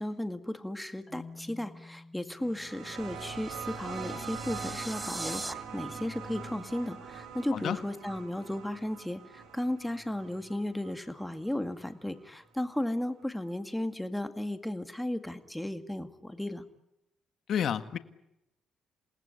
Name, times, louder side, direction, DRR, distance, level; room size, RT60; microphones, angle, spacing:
voice 1, 0.0-16.6, left 1 dB, 5° left, 8 dB, 2.1 m, -35 dB
Marimba xylophone, 1.1-4.0, left 3 dB, 20° left, 7.1 m, -51 dB
sound 1, 2.4-11.7 12.8-12.9, right 6 dB, 80° right, 6.5 m, -43 dB
sound 2, 3.0-5.5, right 1 dB, 10° right, 1.4 m, -41 dB
voice 2, 17.5-18.0, left 8 dB, 65° left, 10 dB, 1.6 m, -29 dB
28.0 x 19.0 x 9.9 m, 0.88 s
cardioid pair, 90°, 0 cm